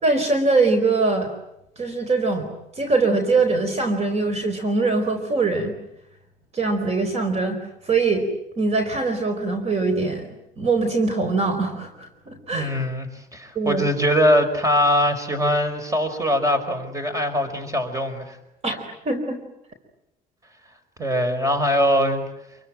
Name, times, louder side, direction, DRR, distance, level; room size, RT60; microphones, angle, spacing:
voice 1, 0.0-1.3 1.8-2.5 2.8-5.7 6.5-7.6 7.8-8.3 8.6-10.3 10.6-12.7 13.5-13.8 18.6-18.8 19.0-19.4, right 3 dB, 40° right, 7 dB, 4.4 m, -22 dB
voice 2, 12.5-18.4 21.0-22.2, equal, 20° right, 10 dB, 5.3 m, -22 dB
28.5 x 23.0 x 9.1 m, 0.85 s
cardioid pair, 110°, 17 cm